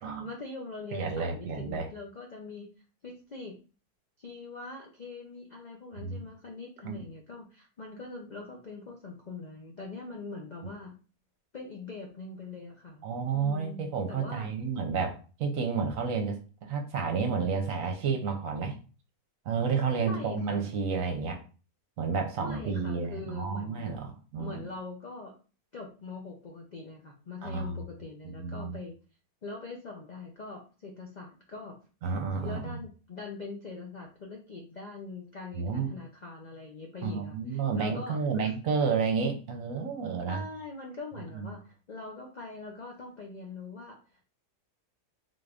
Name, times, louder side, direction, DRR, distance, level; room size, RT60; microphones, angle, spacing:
voice 1, 0.2-2.7 3.0-3.6 4.2-10.9 11.5-14.5 20.0-20.7 22.4-24.0 24.4-25.3 25.7-28.9 29.4-31.8 32.4-38.5 40.3-44.0, left 3 dB, 75° left, 0 dB, 0.4 m, -42 dB
voice 2, 0.9-1.9 6.0-6.2 6.8-7.0 10.6-10.7 13.0-18.8 19.5-21.4 22.0-24.7 27.4-27.8 28.2-28.8 32.0-32.8 35.5-35.9 37.0-40.4 41.3-41.5, right 5 dB, 65° right, 4 dB, 1.0 m, -31 dB
3.8 x 2.5 x 3.4 m, 0.36 s
omnidirectional pair, 1.7 m